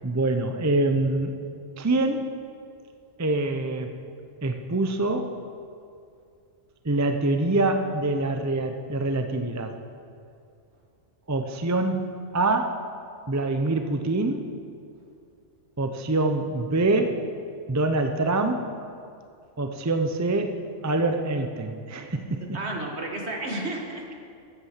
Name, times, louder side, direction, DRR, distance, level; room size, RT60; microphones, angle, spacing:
voice 1, 0.0-1.3 1.8-2.3 3.2-4.0 4.4-5.4 6.8-9.7 11.3-12.8 13.3-14.5 15.8-17.2 17.7-18.7 19.6-22.6, right 2 dB, 20° right, 6 dB, 0.6 m, -25 dB
voice 2, 22.5-24.1, right 2 dB, 65° right, 1 dB, 2.0 m, -32 dB
14.0 x 8.7 x 7.3 m, 2.4 s
omnidirectional pair, 1.2 m